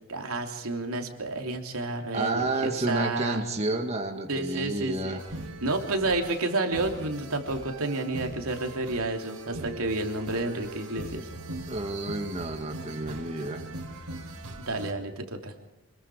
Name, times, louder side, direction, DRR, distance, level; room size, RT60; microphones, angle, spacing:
voice 1, 0.1-3.5 4.3-5.2 5.6-11.3 14.7-15.5, right 2 dB, 70° right, 3 dB, 3.2 m, -30 dB
voice 2, 2.1-5.2 11.7-13.6, right 2 dB, 30° right, 2 dB, 1.9 m, -30 dB
sound 1, 5.2-14.9, right 2 dB, 90° right, 3.4 m, -41 dB
25.5 x 22.0 x 5.0 m, 1.0 s
head